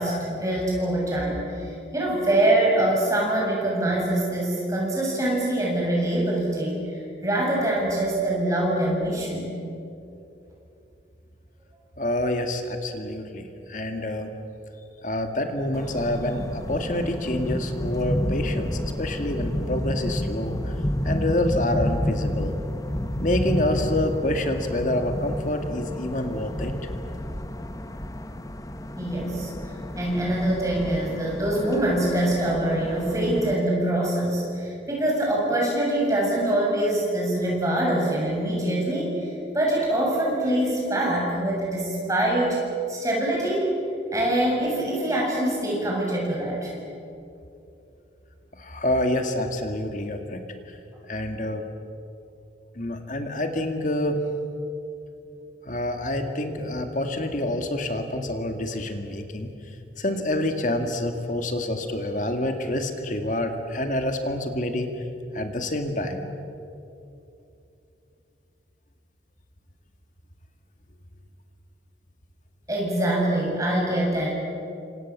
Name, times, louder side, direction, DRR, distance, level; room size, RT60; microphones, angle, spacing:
voice 1, 0.0-9.5 29.0-29.5 30.0-42.6 42.9-43.7 44.1-46.7 72.7-74.3, right 1 dB, 20° right, -3 dB, 7.9 m, -24 dB
voice 2, 12.0-14.3 15.0-20.8 21.0-22.5 23.2-26.7 48.5-50.4 51.0-51.6 52.8-54.2 55.7-59.5 60.0-64.9 65.3-66.3, left 1 dB, 45° left, 5 dB, 2.1 m, -27 dB
sound 1, 15.7-33.5, left 1 dB, 20° left, 1.0 m, -30 dB
29.5 x 26.5 x 7.5 m, 2.7 s
head